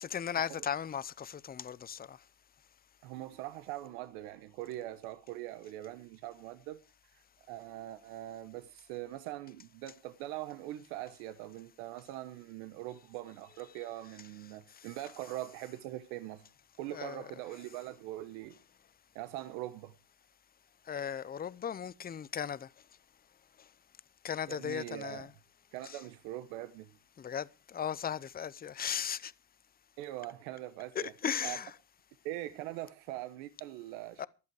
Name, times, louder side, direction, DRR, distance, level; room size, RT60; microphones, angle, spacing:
voice 1, 0.0-2.2 14.8-14.9 16.9-17.3 20.9-22.7 24.2-25.3 25.8-26.0 27.2-29.3 30.9-31.7 34.2-34.3, left 8 dB, 20° left, 0.6 m, -37 dB
voice 2, 3.0-6.8 7.1-7.2 7.5-16.4 16.8-18.6 19.1-19.9 24.5-25.3 25.7-26.9 30.0-31.1 31.4-31.6 32.2-34.3, right 15 dB, 85° right, 1.1 m, -42 dB
15.5 x 11.0 x 4.8 m
supercardioid pair, 95°, 43 cm